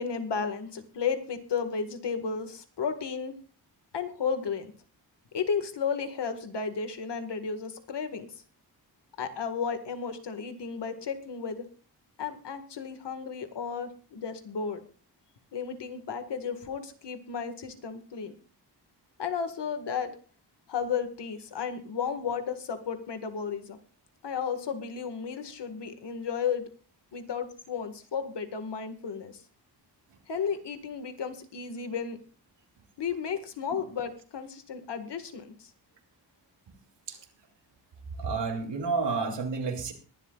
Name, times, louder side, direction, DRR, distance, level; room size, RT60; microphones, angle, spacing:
voice 1, 0.0-3.4 3.9-4.7 5.3-8.4 9.2-11.7 12.2-14.9 15.5-18.3 19.2-20.1 20.7-23.8 24.2-26.7 27.1-29.4 30.3-32.2 33.0-35.7, left 6 dB, 80° left, 7 dB, 1.9 m, -33 dB
voice 2, 38.2-39.9, right 4 dB, 85° right, 3 dB, 3.0 m, -30 dB
22.0 x 11.5 x 2.4 m, 0.38 s
wide cardioid pair, 155°, 41 cm